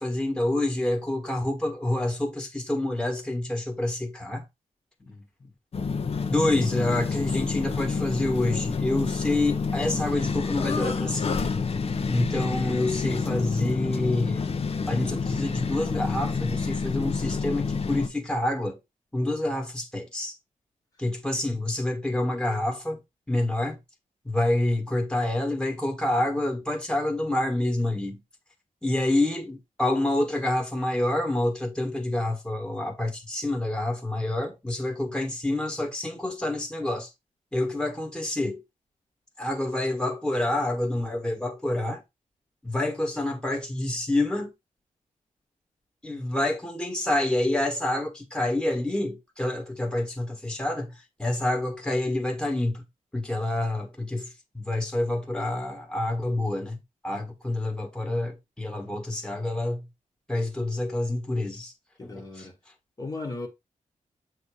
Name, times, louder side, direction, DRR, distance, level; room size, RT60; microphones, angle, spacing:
voice 1, 0.0-4.4 6.3-11.4 12.1-14.5 14.9-18.8 19.1-20.3 21.0-23.0 23.3-23.8 24.2-28.2 28.8-37.1 37.5-38.6 39.4-42.0 42.6-44.5 46.0-50.9 51.2-52.8 53.1-54.3 54.5-56.8 57.0-59.9 60.3-61.7 62.0-62.5, left 1 dB, 5° left, 1.5 m, -27 dB
voice 2, 5.0-5.5 6.5-6.7 62.0-62.5 63.0-63.5, left 3 dB, 25° left, 1.3 m, -37 dB
sound 1, 5.7-18.1, left 5 dB, 45° left, 0.8 m, -28 dB
7.9 x 2.9 x 4.9 m
wide cardioid pair, 160°, 14 cm